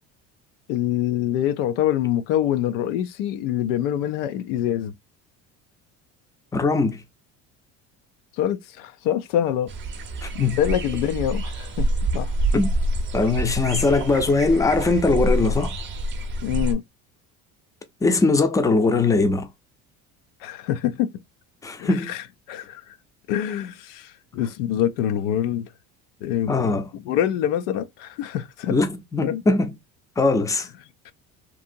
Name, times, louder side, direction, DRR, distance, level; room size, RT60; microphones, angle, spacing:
voice 1, 0.7-4.9 8.4-9.7 10.3-11.9 12.1-12.3 16.4-16.8 20.4-21.1 21.8-23.0 23.3-25.7 26.2-28.7 29.2-29.4 31.1-31.2, left 11 dB, 90° left, 0.5 m, -25 dB
voice 2, 6.5-7.0 10.2-10.6 12.5-12.7 13.1-15.7 18.0-19.5 21.6-22.1 26.5-26.8 28.7-29.7 30.2-30.7, left 3 dB, 10° left, 0.5 m, -21 dB
sound 1, 9.7-16.7, right 1 dB, 35° right, 0.6 m, -26 dB
2.7 x 2.6 x 2.6 m
supercardioid pair, 105°, 34 cm